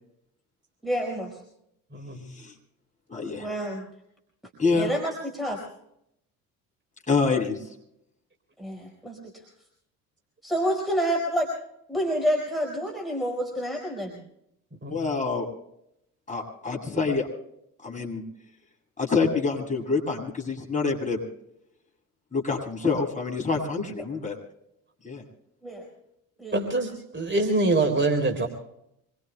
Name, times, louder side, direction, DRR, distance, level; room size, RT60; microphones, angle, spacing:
voice 1, 0.8-1.4 3.4-3.8 4.7-5.6 8.6-9.4 10.4-11.5 11.9-14.2 24.0-24.1 25.6-25.9 26.4-26.6, equal, ahead, 1 dB, 5.0 m, -28 dB
voice 2, 1.9-2.3 14.8-15.1 26.5-28.5, right 2 dB, 25° right, 4 dB, 3.8 m, -25 dB
voice 3, 3.1-3.5 4.6-4.9 7.1-7.6 14.9-15.4 16.3-17.3 17.8-18.2 19.0-21.2 22.3-24.3 25.0-25.2, left 4 dB, 15° left, 0 dB, 7.8 m, -26 dB
26.5 x 23.5 x 2.2 m, 0.77 s
figure-of-eight pair, 55°, 45 cm